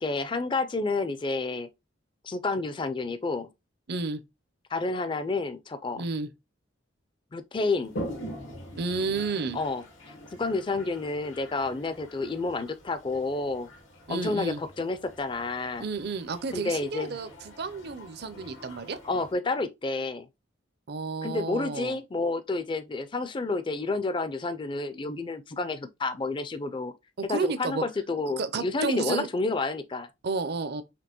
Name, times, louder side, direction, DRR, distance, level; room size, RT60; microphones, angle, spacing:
voice 1, 0.0-1.7 2.2-3.5 4.7-6.0 7.3-7.9 9.5-9.8 10.3-13.7 14.1-15.8 16.5-17.2 19.0-20.3 21.2-26.9 27.2-30.1, left 3 dB, 25° left, 0.4 m, -30 dB
voice 2, 3.9-4.2 6.0-6.3 8.8-9.6 14.1-14.6 15.8-19.0 20.9-22.0 27.2-27.8 28.4-29.3 30.2-30.8, right 4 dB, 55° right, 0.5 m, -31 dB
Toilet flush, 7.8-19.3, equal, 85° left, 1.2 m, -44 dB
5.1 x 2.9 x 2.9 m
head